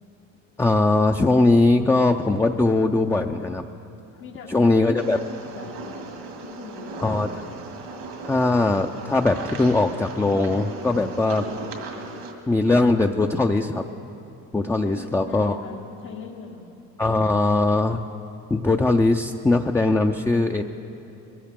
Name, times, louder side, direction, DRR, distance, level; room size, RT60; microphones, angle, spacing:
voice 1, 0.6-3.6 4.5-5.2 7.0-7.3 8.2-11.5 12.5-13.8 14.5-15.6 17.0-18.0 18.5-20.6, left 2 dB, 5° left, 4 dB, 0.4 m, -20 dB
voice 2, 4.2-7.4 14.8-16.7, left 5 dB, 80° left, -4 dB, 1.5 m, -41 dB
sound 1, 5.0-12.3, right 3 dB, 80° right, 2.0 m, -37 dB
21.5 x 15.0 x 3.7 m, 2.8 s
supercardioid pair, 85°, 38 cm